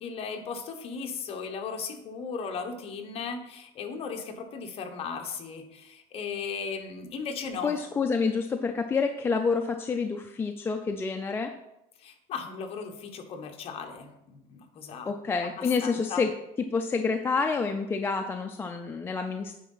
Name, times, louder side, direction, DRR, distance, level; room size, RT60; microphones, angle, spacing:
voice 1, 0.0-7.7 12.0-15.1 15.4-16.2, left 5 dB, 35° left, 4 dB, 1.1 m, -37 dB
voice 2, 7.6-11.5 15.1-16.3 16.6-19.5, left 4 dB, 15° left, 5 dB, 0.4 m, -28 dB
9.2 x 4.7 x 5.6 m, 0.88 s
cardioid pair, 155°, 17 cm